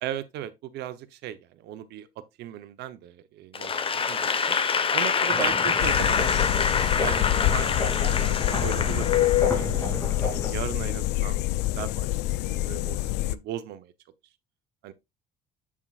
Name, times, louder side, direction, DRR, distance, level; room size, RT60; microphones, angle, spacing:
voice 1, 0.0-2.1 2.4-4.6 4.9-11.4 11.8-13.9 14.8-14.9, right 11 dB, 80° right, 0.9 m, -38 dB
Applause / Crowd, 3.5-9.9, left 6 dB, 30° left, 1.0 m, -26 dB
sound 1, 5.3-10.5, left 1 dB, 15° left, 3.3 m, -33 dB
sound 2, 5.8-13.4, left 16 dB, 85° left, 0.4 m, -26 dB
7.7 x 7.4 x 2.4 m
cardioid pair, 110°, 17 cm